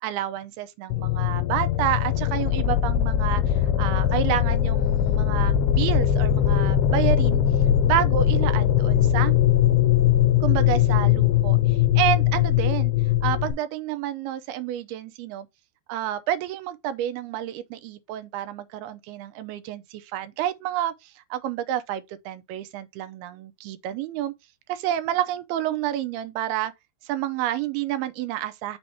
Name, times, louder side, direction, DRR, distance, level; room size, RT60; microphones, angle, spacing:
voice 1, 0.0-7.4 7.9-9.3 10.4-12.9 13.2-15.5 15.9-24.3 24.7-26.7 27.0-28.8, right 12 dB, 80° right, 2.5 m, -29 dB
sound 1, 0.9-13.5, left 10 dB, 85° left, 2.6 m, -21 dB
6.2 x 2.8 x 5.6 m
omnidirectional pair, 4.5 m